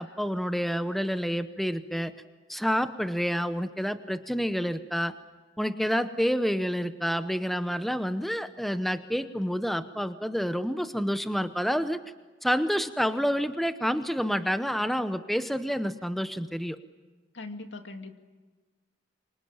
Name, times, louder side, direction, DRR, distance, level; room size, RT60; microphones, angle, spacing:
voice 1, 0.0-2.1 2.5-5.1 5.6-12.0 12.4-16.8, equal, ahead, 10 dB, 0.8 m, -28 dB
voice 2, 17.3-18.2, left 2 dB, 70° left, 5 dB, 2.3 m, -40 dB
26.5 x 25.0 x 8.9 m, 1.3 s
head